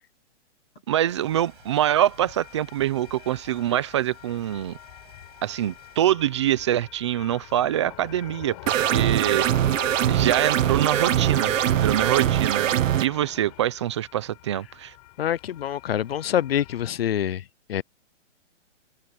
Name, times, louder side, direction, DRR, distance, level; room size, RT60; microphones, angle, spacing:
voice 1, 0.9-4.8 5.4-9.5 10.1-12.7 13.0-14.9, right 12 dB, 25° right, 0.8 m, -25 dB
sound 1, 1.0-16.9, left 21 dB, 30° left, 6.4 m, -42 dB
Rain, 1.1-6.1, right 11 dB, 45° right, 6.3 m, -54 dB
sound 2, 8.7-13.1, right 12 dB, 85° right, 0.5 m, -22 dB
voice 2, 15.2-17.4 17.7-17.8, left 10 dB, 50° left, 0.8 m, -25 dB
hypercardioid pair, 165°, 38 cm